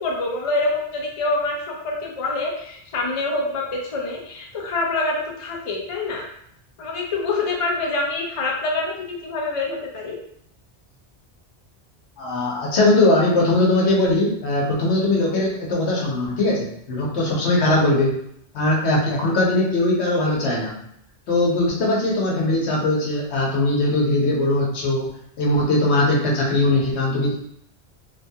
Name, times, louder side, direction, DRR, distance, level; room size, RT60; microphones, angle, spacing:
voice 1, 0.0-6.3 6.8-10.2, left 2 dB, 40° left, -1 dB, 0.5 m, -26 dB
voice 2, 12.2-18.2 18.5-20.8 21.3-27.3, left 2 dB, 80° left, -3 dB, 1.1 m, -20 dB
3.0 x 2.3 x 2.7 m, 0.70 s
omnidirectional pair, 1.1 m